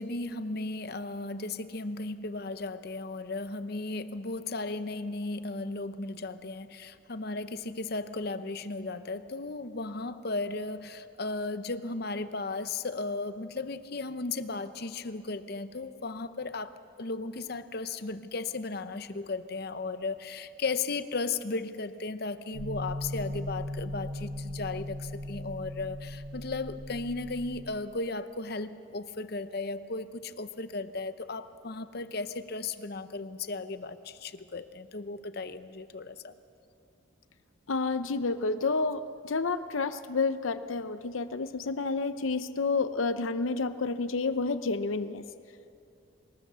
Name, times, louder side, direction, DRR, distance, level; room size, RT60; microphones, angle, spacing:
voice 1, 0.0-36.3, left 3 dB, 50° left, 12 dB, 0.8 m, -35 dB
sound 1, 22.5-27.7, left 1 dB, 80° right, 1.2 m, -38 dB
voice 2, 37.7-45.2, left 3 dB, 85° left, 12 dB, 0.7 m, -30 dB
25.0 x 20.0 x 6.8 m, 2.6 s
head